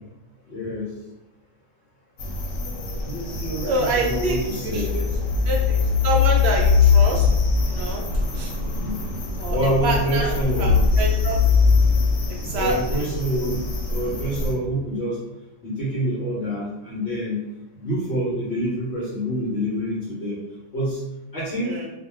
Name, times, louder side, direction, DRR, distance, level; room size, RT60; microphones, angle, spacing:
voice 1, 0.5-0.9 3.0-5.0 8.7-9.0 9.5-10.9 12.5-13.6 13.9-15.2 15.6-17.4 17.7-20.4 20.7-21.0 21.3-21.7, equal, 60° left, -7 dB, 1.0 m, -26 dB
sound 1, 2.2-14.5, left 5 dB, 90° left, 1.0 m, -22 dB
voice 2, 3.7-4.4 4.6-4.8 5.5-7.3 7.7-8.0 8.3-8.5 9.4-9.6 9.8-10.3 10.6-11.4 12.5-12.7 21.6-21.8, right 3 dB, 65° right, 0 dB, 0.8 m, -26 dB
2.3 x 2.2 x 3.2 m, 0.93 s
omnidirectional pair, 1.3 m